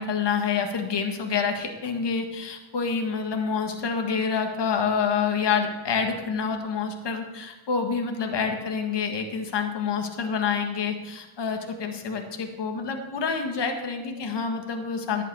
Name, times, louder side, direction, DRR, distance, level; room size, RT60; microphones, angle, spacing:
voice 1, 0.0-15.2, left 5 dB, 60° left, 4 dB, 1.7 m, -27 dB
11.0 x 5.7 x 8.7 m, 1.1 s
cardioid pair, 60°, 48 cm